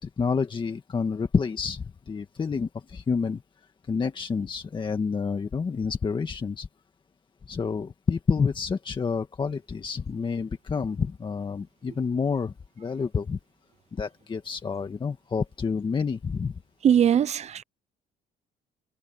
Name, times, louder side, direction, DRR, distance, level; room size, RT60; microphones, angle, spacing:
voice 1, 0.0-3.4 3.9-6.7 7.5-13.4 13.9-16.5, left 5 dB, 30° left, 1.6 m, -28 dB
voice 2, 16.8-17.6, right 9 dB, 40° right, 0.6 m, -21 dB
cardioid pair, 110°, 17 cm